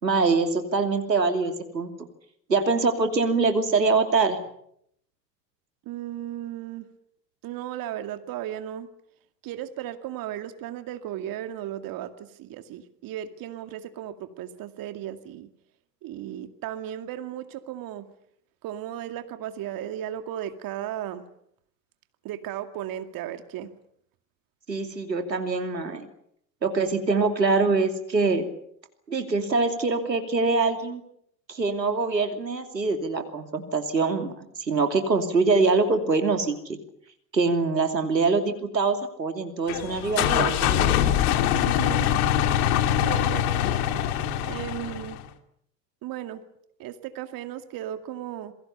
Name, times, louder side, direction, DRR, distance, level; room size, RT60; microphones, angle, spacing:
voice 1, 0.0-1.9 2.5-4.4 24.7-26.1 26.6-28.5 29.1-31.0 31.5-36.8 37.3-41.0, right 3 dB, 90° right, 6 dB, 2.9 m, -24 dB
voice 2, 5.9-6.9 7.4-8.9 9.4-15.5 16.0-18.1 18.6-21.3 22.2-23.7 41.5-42.1 43.0-43.6 44.5-45.2 46.0-46.4 46.8-48.5, right 11 dB, 45° right, 8 dB, 2.3 m, -35 dB
sound 1, 39.7-45.2, left 10 dB, 60° left, 2.5 m, -23 dB
27.5 x 23.0 x 7.0 m, 0.71 s
figure-of-eight pair, 80°, 49 cm